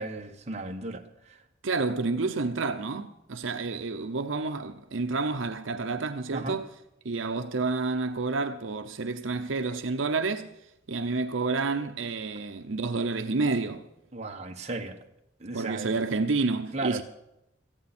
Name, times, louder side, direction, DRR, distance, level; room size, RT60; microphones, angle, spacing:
voice 1, 0.0-1.4 6.3-6.6 14.1-15.0 15.4-15.9 16.7-17.0, right 2 dB, 35° right, 1.5 m, -35 dB
voice 2, 1.6-6.7 7.0-10.5 10.9-13.9 15.5-17.0, right 3 dB, 75° right, 0.8 m, -29 dB
18.0 x 14.5 x 4.4 m
head